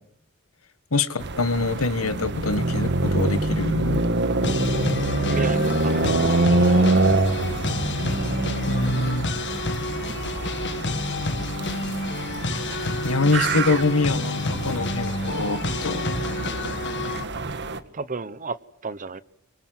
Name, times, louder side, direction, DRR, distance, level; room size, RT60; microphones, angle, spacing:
voice 1, 0.9-4.1 8.7-9.3 12.5-12.6 13.0-16.2, left 3 dB, 85° left, 1.6 m, -25 dB
sound 1, 1.2-17.8, right 2 dB, 55° right, 1.7 m, -25 dB
sound 2, 4.4-17.2, left 2 dB, 55° left, 1.5 m, -30 dB
voice 2, 5.3-6.2 6.5-7.0 17.9-18.6 18.8-19.2, right 3 dB, 40° right, 1.0 m, -33 dB
26.0 x 24.5 x 7.8 m
head